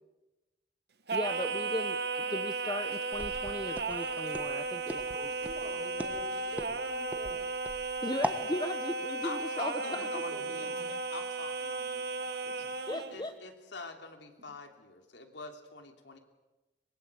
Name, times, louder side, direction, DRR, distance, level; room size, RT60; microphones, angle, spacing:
voice 1, 1.1-5.0 8.0-10.1 10.9-11.0 12.9-13.3, left 1 dB, 25° left, 9 dB, 0.8 m, -37 dB
Singing, 1.1-13.2, right 3 dB, 65° right, 1.5 m, -35 dB
Walk footsteps, 3.1-8.5, right 1 dB, 10° right, 1.3 m, -39 dB
voice 2, 4.9-7.4 9.8-10.9 12.4-13.0, right 1 dB, 40° right, 4 dB, 4.4 m, -47 dB
voice 3, 9.2-10.8 11.1-12.4 13.1-16.2, left 3 dB, 80° left, 5 dB, 3.2 m, -45 dB
23.5 x 21.5 x 8.4 m, 1.1 s
head